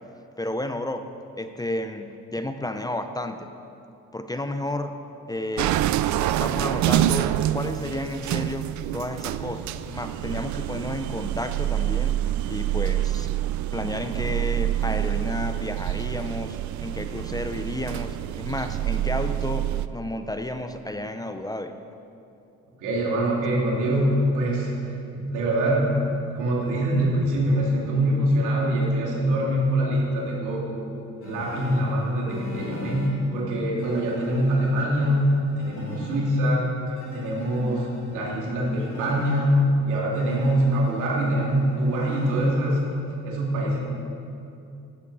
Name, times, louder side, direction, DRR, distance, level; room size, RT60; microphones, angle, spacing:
voice 1, 0.4-1.1 1.4-3.5 4.1-4.9 5.3-5.8 6.4-8.7 8.9-13.3 13.7-21.7, left 1 dB, 10° left, 7 dB, 0.6 m, -32 dB
sound 1, 5.6-19.9, right 13 dB, 70° right, 0.5 m, -27 dB
voice 2, 22.8-24.7 25.2-26.0 26.3-30.8 31.2-36.7 37.1-42.8 43.2-43.8, right 1 dB, 90° right, -3 dB, 2.8 m, -24 dB
sound 2, 31.2-33.1 33.8-36.2 37.0-39.3 40.1-42.5, left 2 dB, 65° left, 3.0 m, -40 dB
14.0 x 8.2 x 4.9 m, 2.7 s
cardioid pair, 90°, 30 cm